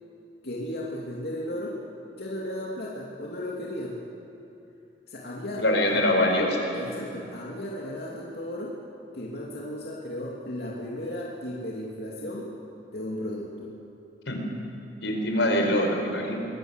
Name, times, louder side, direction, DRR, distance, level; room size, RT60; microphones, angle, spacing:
voice 1, 0.4-1.8 2.2-4.0 5.1-6.1 6.7-8.8 9.1-12.5 12.9-13.7, left 1 dB, 60° left, -4 dB, 2.8 m, -35 dB
voice 2, 5.6-6.9 14.3-14.4 15.0-16.4, left 1 dB, 90° left, 2 dB, 4.7 m, -24 dB
24.5 x 20.5 x 8.2 m, 2.9 s
head